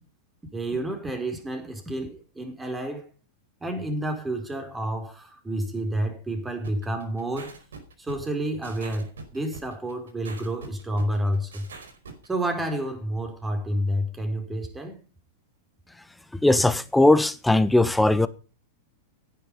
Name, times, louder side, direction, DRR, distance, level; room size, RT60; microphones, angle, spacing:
voice 1, 0.5-3.1 3.6-7.5 8.0-11.7 12.2-15.0, right 1 dB, 10° right, 5.0 m, -29 dB
sound 1, 6.6-12.3, right 4 dB, 75° right, 5.0 m, -43 dB
voice 2, 16.3-18.3, left 2 dB, 5° left, 1.2 m, -19 dB
16.5 x 10.5 x 5.5 m
hypercardioid pair, 100°, 0 cm